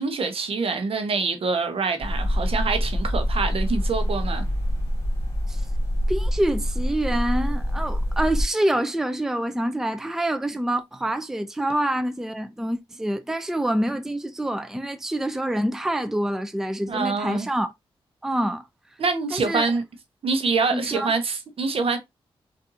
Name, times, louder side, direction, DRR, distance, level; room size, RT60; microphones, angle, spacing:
voice 1, 0.0-4.5 16.9-17.5 19.0-19.8 20.2-22.0, right 4 dB, 65° right, 0.8 m, -25 dB
sound 1, 2.0-8.5, equal, 30° left, 2.1 m, -25 dB
voice 2, 6.1-17.7 18.2-18.7 19.3-19.7 20.7-21.1, right 1 dB, 5° right, 0.4 m, -26 dB
3.8 x 2.6 x 2.7 m
cardioid pair, 60°, 10 cm